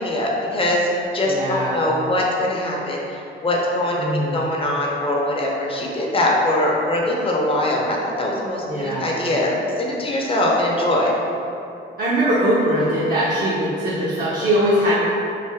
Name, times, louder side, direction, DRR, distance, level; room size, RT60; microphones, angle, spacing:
voice 1, 0.0-11.1, left 1 dB, 25° left, -2 dB, 0.6 m, -22 dB
voice 2, 1.3-1.8 4.0-4.4 8.7-9.0 12.0-14.9, equal, 45° right, -7 dB, 0.6 m, -21 dB
3.3 x 2.5 x 3.4 m, 2.7 s
cardioid pair, 90°, 20 cm